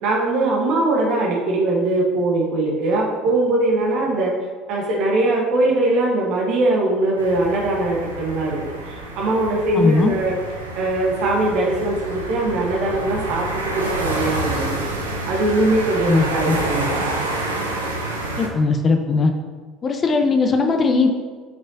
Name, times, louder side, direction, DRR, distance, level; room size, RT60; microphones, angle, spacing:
voice 1, 0.0-4.3 4.7-10.4 10.7-16.9, right 2 dB, 60° right, -2 dB, 1.1 m, -21 dB
sound 1, 7.2-18.5, right 2 dB, 90° right, 0.8 m, -28 dB
voice 2, 9.7-10.1 16.1-16.6 18.4-19.3 19.8-21.1, left 4 dB, 35° left, 4 dB, 0.7 m, -18 dB
9.1 x 5.2 x 2.7 m, 1.5 s
figure-of-eight pair, 65°, 0 cm